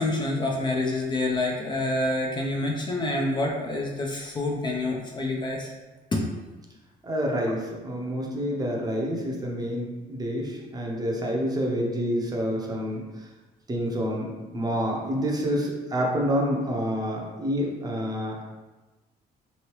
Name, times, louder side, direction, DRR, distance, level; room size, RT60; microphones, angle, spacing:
voice 1, 0.0-5.7 6.1-6.2, left 2 dB, 25° left, -1 dB, 0.5 m, -27 dB
voice 2, 7.0-13.0 13.7-18.4, equal, 25° right, -1 dB, 0.6 m, -28 dB
3.0 x 2.7 x 3.1 m, 1.2 s
cardioid pair, 110°, 17 cm